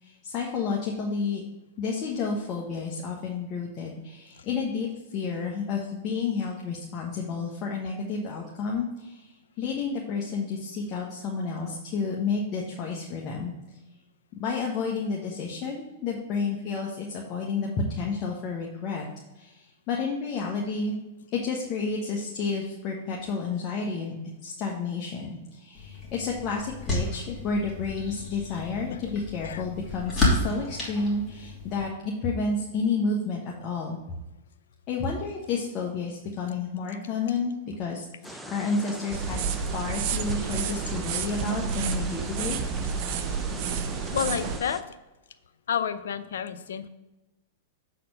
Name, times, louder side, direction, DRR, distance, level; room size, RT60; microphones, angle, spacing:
voice 1, 0.0-1.4 1.8-4.9 5.1-9.3 9.6-13.5 14.4-19.0 19.4-21.0 21.3-24.1 24.4-34.0 34.9-42.6, left 4 dB, 40° left, -1 dB, 1.3 m, -30 dB
sound 1, 25.7-31.9, left 2 dB, 20° left, 2.9 m, -31 dB
sound 2, 38.2-44.8, equal, ahead, 0.6 m, -41 dB
sound 3, 39.1-44.6, right 6 dB, 50° right, 0.7 m, -30 dB
voice 2, 44.1-45.0 45.7-46.9, left 8 dB, 80° left, 11 dB, 0.6 m, -30 dB
7.6 x 4.3 x 5.5 m, 1.1 s
hypercardioid pair, 125°, 0 cm